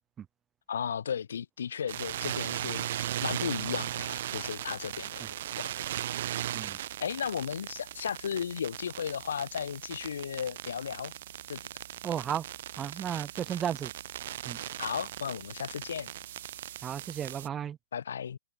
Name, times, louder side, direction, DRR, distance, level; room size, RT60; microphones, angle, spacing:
voice 1, 0.7-5.7 7.0-11.1 11.5-11.6 14.8-16.1 17.9-18.4, left 8 dB, 80° left, 6.4 m, -35 dB
sound 1, 1.9-17.5, right 12 dB, 50° right, 0.9 m, -38 dB
voice 2, 12.0-12.4 12.8-13.9 14.5-14.6 16.8-17.8, right 9 dB, 15° right, 1.9 m, -34 dB
hypercardioid pair, 160°, 0 cm